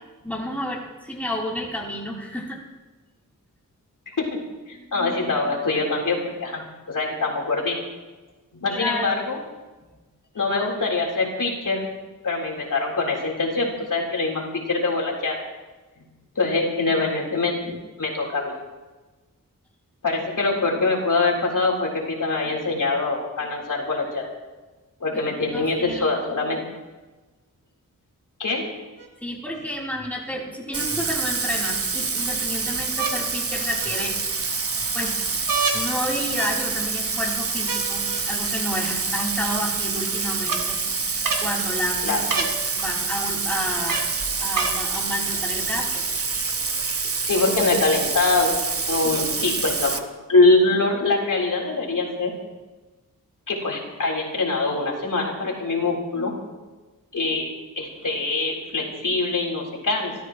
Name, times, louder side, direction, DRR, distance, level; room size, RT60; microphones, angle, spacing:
voice 1, 0.2-2.6 8.7-9.1 16.9-17.0 25.5-26.1 29.2-34.5 34.9-35.3 35.7-40.8 41.0-41.1 41.4-42.5 42.8-44.1 44.4-46.0, equal, 5° left, -4 dB, 3.6 m, -31 dB
voice 2, 4.7-6.6 6.9-7.8 8.5-9.4 10.3-11.8 12.2-14.4 14.7-15.4 16.4-18.5 20.0-24.2 25.0-26.6 28.4-28.7 42.0-42.2 47.3-48.6 48.9-50.0 50.3-52.3 53.5-56.3 57.1-57.5 57.8-60.1, left 3 dB, 70° left, -2 dB, 4.0 m, -23 dB
sound 1, 29.0-29.1 30.7-31.4 32.9-33.2 33.8-34.3 35.5-35.8 36.4-36.9 37.7-38.2 39.2-39.3 40.5-40.6 41.2-41.5 42.3-42.6 43.9-44.1 44.5-44.8 45.7-45.8, right 4 dB, 75° right, 2.5 m, -28 dB
Bathtub (filling or washing), 30.7-50.0, right 4 dB, 45° right, 1.2 m, -27 dB
29.5 x 14.0 x 3.1 m, 1.2 s
wide cardioid pair, 115°, 33 cm